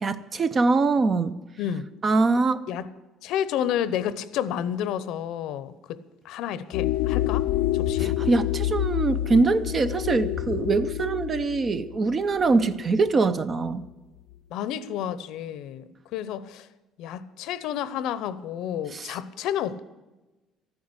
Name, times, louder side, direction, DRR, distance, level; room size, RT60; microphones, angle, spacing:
voice 1, 0.0-1.4 2.0-2.6 8.0-13.8 18.9-19.1, right 3 dB, 25° right, 0.6 m, -23 dB
voice 2, 3.2-6.0 6.2-7.5 7.7-8.2 14.5-16.7 17.0-19.8, left 10 dB, 65° left, 0.8 m, -30 dB
sound 1, 6.7-13.2, left 13 dB, 90° left, 0.6 m, -28 dB
14.0 x 9.8 x 8.0 m
cardioid pair, 165°, 0 cm